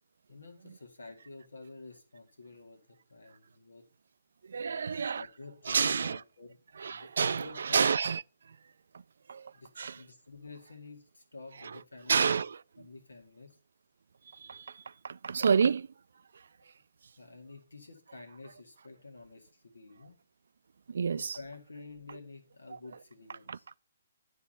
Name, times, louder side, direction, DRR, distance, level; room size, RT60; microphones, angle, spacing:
voice 1, 0.3-2.8 3.1-3.9 4.7-6.6 6.9-7.9 9.5-12.2 12.8-13.5 17.2-20.2 21.2-23.7, left 3 dB, 85° left, 1.9 m, -49 dB
voice 2, 4.4-5.3 5.7-6.2 6.8-8.2 8.5-8.6 9.3-10.0 11.6-11.8 12.1-12.6 14.3-15.9 20.9-21.4 22.7-22.8 23.5-23.6, right 6 dB, 65° right, 0.3 m, -29 dB
9.9 x 3.6 x 5.7 m
figure-of-eight pair, 140°, 0 cm